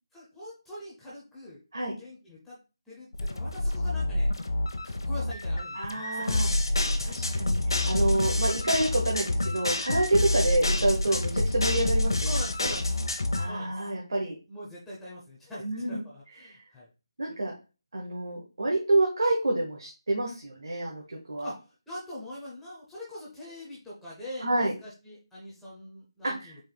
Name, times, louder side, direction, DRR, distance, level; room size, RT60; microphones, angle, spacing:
voice 1, 0.1-1.6 2.0-2.6 2.9-4.3 4.8-7.4 9.9-10.0 11.1-11.2 12.2-12.9 13.4-13.7 14.5-16.9 21.4-26.6, left 1 dB, ahead, -7 dB, 0.5 m, -43 dB
sound 1, 3.1-13.5, left 2 dB, 65° left, 0.8 m, -27 dB
voice 2, 5.7-6.5 7.0-12.2 12.6-12.7 13.3-14.4 15.6-16.0 16.4-16.6 17.2-17.5 17.9-21.0 21.3-21.5 24.4-24.7 26.2-26.5, right 2 dB, 60° right, -1 dB, 1.2 m, -28 dB
4.4 x 2.9 x 3.9 m, 0.31 s
figure-of-eight pair, 175°, 3 cm